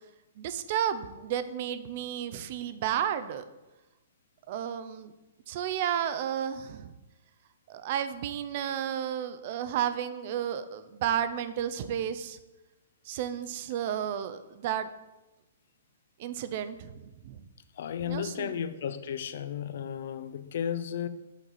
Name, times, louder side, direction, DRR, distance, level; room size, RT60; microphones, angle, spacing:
voice 1, 0.4-3.4 4.5-5.1 5.5-6.9 7.7-12.4 13.1-14.9 16.2-17.4 18.0-18.6, right 9 dB, 30° right, 12 dB, 0.4 m, -32 dB
voice 2, 17.8-21.1, left 8 dB, 45° left, 12 dB, 0.4 m, -34 dB
7.9 x 4.5 x 4.1 m, 1.0 s
hypercardioid pair, 175°, 0 cm